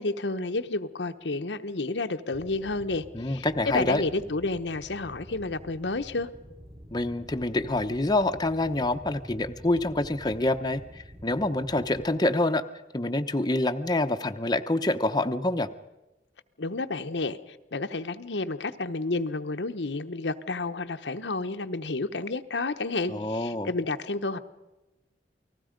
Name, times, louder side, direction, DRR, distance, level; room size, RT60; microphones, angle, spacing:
voice 1, 0.0-6.3 16.6-24.4, left 3 dB, 80° left, 8 dB, 1.0 m, -31 dB
sound 1, 2.3-12.0, equal, 35° right, 5.2 m, -48 dB
voice 2, 3.1-4.0 6.9-12.6 12.9-15.7 23.1-23.7, left 2 dB, 25° left, 7 dB, 0.8 m, -26 dB
29.0 x 19.5 x 5.2 m, 1.0 s
head